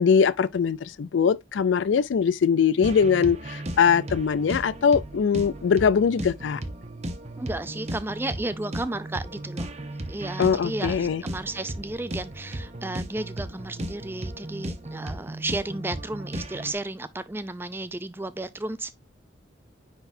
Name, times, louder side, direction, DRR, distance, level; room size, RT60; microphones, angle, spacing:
voice 1, 0.0-6.6 10.4-11.2, left 6 dB, 80° left, 0.4 m, -22 dB
sound 1, 2.8-16.7, right 1 dB, 35° right, 0.9 m, -36 dB
voice 2, 7.4-9.7 10.1-19.0, right 2 dB, 10° right, 0.4 m, -33 dB
9.8 x 4.0 x 2.6 m
head